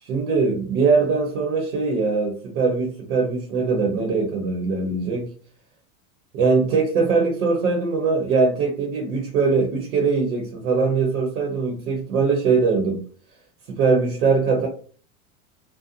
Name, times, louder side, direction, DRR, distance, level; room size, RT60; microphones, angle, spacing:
voice 1, 0.0-5.3 6.3-13.0 13.7-14.7, right 4 dB, 85° right, 2 dB, 1.0 m, -21 dB
2.6 x 2.2 x 2.6 m, 0.41 s
supercardioid pair, 160°, 42 cm